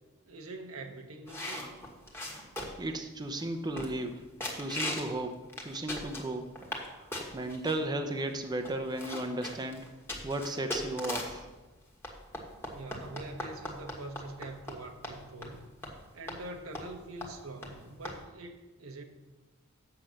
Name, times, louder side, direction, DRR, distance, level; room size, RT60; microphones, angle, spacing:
voice 1, 0.3-1.6 12.7-15.6 16.1-19.0, right 2 dB, 85° right, 5 dB, 1.1 m, -44 dB
sound 1, 1.3-2.9 3.4-3.5 3.8-4.1 4.4-5.1 5.5-6.9 7.1-7.8 8.3-8.4 8.6-11.4 12.0-14.8 15.0-15.2 15.4-15.5 15.8-15.9 16.3-16.4 16.7-16.9 17.2-17.3 17.6-17.7 18.0-18.2, left 1 dB, 10° left, 1.5 m, -38 dB
voice 2, 2.8-4.2 4.5-5.4 5.6-6.5 7.3-9.9 10.2-11.5, right 1 dB, 20° right, 6 dB, 0.6 m, -34 dB
7.8 x 7.2 x 6.4 m, 1.2 s
head